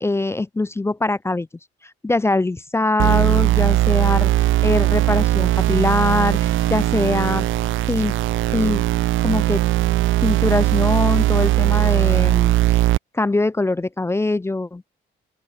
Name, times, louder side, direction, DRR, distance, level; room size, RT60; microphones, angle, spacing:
voice 1, 0.0-1.5 2.0-7.5 7.9-8.1 8.5-8.8 9.2-9.6 10.2-14.9, left 2 dB, 15° left, 0.4 m, -22 dB
sound 1, 3.0-13.0, right 15 dB, 80° right, 0.7 m, -19 dB
sound 2, 5.8-12.8, right 9 dB, 55° right, 2.0 m, -42 dB
open air
cardioid pair, 90°, 20 cm